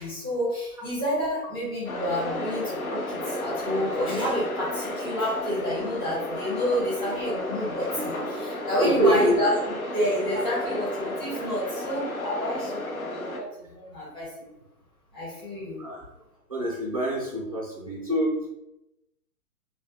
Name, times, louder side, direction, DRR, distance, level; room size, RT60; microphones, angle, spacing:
voice 1, 0.0-9.6 9.9-14.3 15.1-15.8, equal, 10° left, -9 dB, 1.4 m, -29 dB
sound 1, 1.9-13.4, left 1 dB, 70° left, 0.9 m, -33 dB
voice 2, 8.8-9.3 15.8-16.0 16.5-18.5, right 1 dB, 25° right, -5 dB, 0.4 m, -25 dB
3.1 x 2.2 x 2.9 m, 0.89 s
figure-of-eight pair, 125°, 44 cm